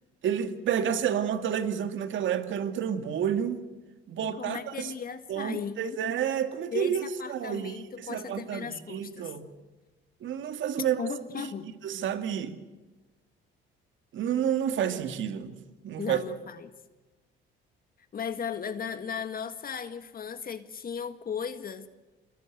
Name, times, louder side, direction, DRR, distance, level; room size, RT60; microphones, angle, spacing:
voice 1, 0.2-3.6 4.1-4.9 5.3-9.5 10.2-11.0 11.4-11.5 11.8-12.6 14.1-15.6 15.8-16.2, right 9 dB, 65° right, 2.2 m, -30 dB
voice 2, 4.2-6.0 6.7-9.3 11.0-11.7 16.0-16.7 18.1-21.9, left 7 dB, 45° left, 1.7 m, -36 dB
26.0 x 21.5 x 8.0 m
cardioid pair, 85°, 21 cm